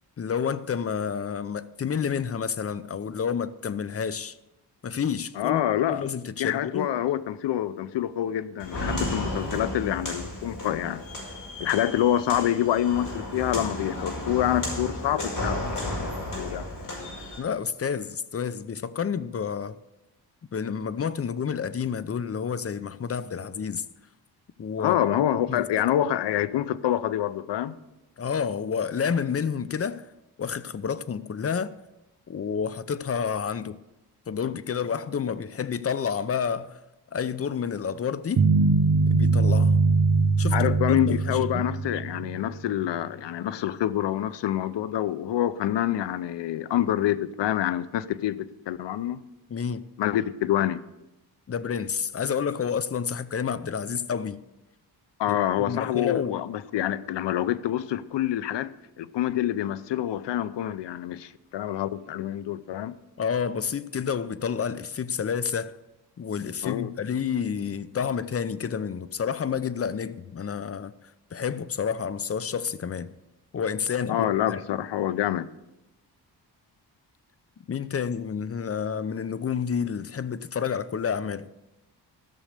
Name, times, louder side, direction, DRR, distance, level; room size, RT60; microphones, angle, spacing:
voice 1, 0.2-4.4 4.8-5.6 5.9-6.9 17.4-19.8 20.5-23.8 24.6-25.0 25.5-25.9 28.2-30.1 30.4-31.7 32.3-33.8 34.3-36.8 37.1-38.4 39.1-39.8 40.4-41.6 49.5-49.8 51.5-54.4 55.3-56.4 63.2-65.8 66.2-70.9 71.3-73.1 73.5-74.6 77.7-81.5, left 7 dB, 35° left, 0.7 m, -29 dB
voice 2, 5.4-6.0 6.4-11.0 11.6-15.6 15.9-16.6 24.8-27.7 40.5-49.2 50.0-50.8 55.2-63.0 66.6-66.9 74.1-75.5, left 11 dB, 80° left, 0.7 m, -27 dB
Walk footsteps, 8.6-17.4, left 1 dB, 50° left, 5.4 m, -33 dB
sound 1, 38.4-42.6, right 4 dB, 40° right, 0.8 m, -22 dB
14.5 x 6.5 x 6.5 m
cardioid pair, 80°, 42 cm